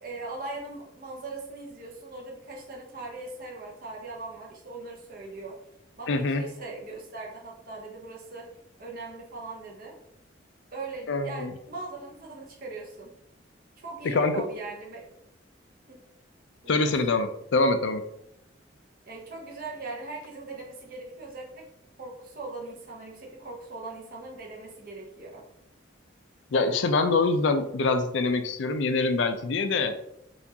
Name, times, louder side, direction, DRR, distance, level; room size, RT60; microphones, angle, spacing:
voice 1, 0.0-5.6 6.0-10.0 10.7-13.1 13.8-15.1 15.9-16.0 16.6-17.1 19.1-21.7 22.0-25.5, right 3 dB, 50° right, -1 dB, 0.9 m, -40 dB
voice 2, 6.1-6.4 11.1-11.5 14.0-14.4 16.7-18.0 26.5-30.0, left 3 dB, 70° left, 8 dB, 0.4 m, -25 dB
4.4 x 2.5 x 2.8 m, 0.80 s
head